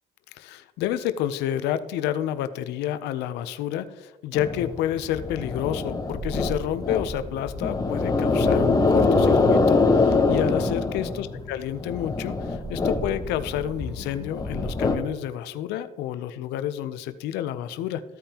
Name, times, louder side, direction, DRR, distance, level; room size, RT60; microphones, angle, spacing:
voice 1, 0.3-18.0, left 11 dB, 85° left, 13 dB, 0.6 m, -29 dB
sound 1, 4.3-15.0, left 3 dB, 20° left, 1.1 m, -24 dB
14.5 x 5.3 x 2.9 m, 1.2 s
cardioid pair, 110°, 17 cm